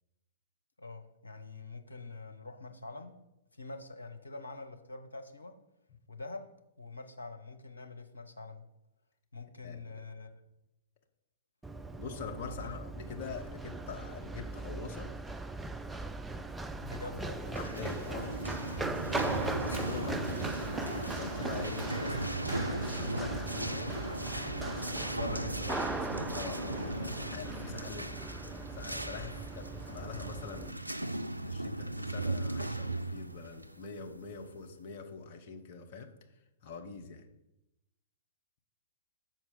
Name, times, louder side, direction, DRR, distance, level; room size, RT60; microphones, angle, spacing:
voice 1, 0.8-3.1 3.5-5.5 6.1-6.5 6.8-8.6 9.3-10.3 12.4-12.8 16.8-17.5 25.3-25.5, left 3 dB, 80° left, 4 dB, 0.9 m, -45 dB
voice 2, 9.6-10.0 12.0-15.1 17.1-17.2 17.5-18.4 19.0-20.5 21.2-24.0 25.0-28.3 28.7-30.8 31.4-36.1 36.6-37.2, left 5 dB, 45° left, 3 dB, 1.0 m, -44 dB
Run, 11.6-30.7, right 2 dB, 5° right, 0.3 m, -39 dB
sound 1, 17.4-34.8, right 2 dB, 90° right, 0.3 m, -37 dB
6.4 x 4.5 x 6.7 m, 0.89 s
figure-of-eight pair, 110°, 0 cm